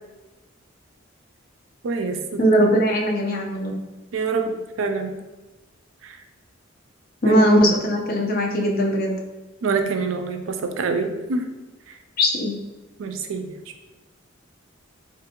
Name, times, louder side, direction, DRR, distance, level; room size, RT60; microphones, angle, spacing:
voice 1, 1.8-2.4 4.1-5.1 6.0-6.1 7.3-7.4 9.6-11.4 13.0-13.5, right 4 dB, 70° right, 6 dB, 0.4 m, -26 dB
voice 2, 2.4-3.7 7.2-9.1 12.2-12.6, equal, 50° left, 0 dB, 0.6 m, -19 dB
3.5 x 2.5 x 2.8 m, 1.1 s
head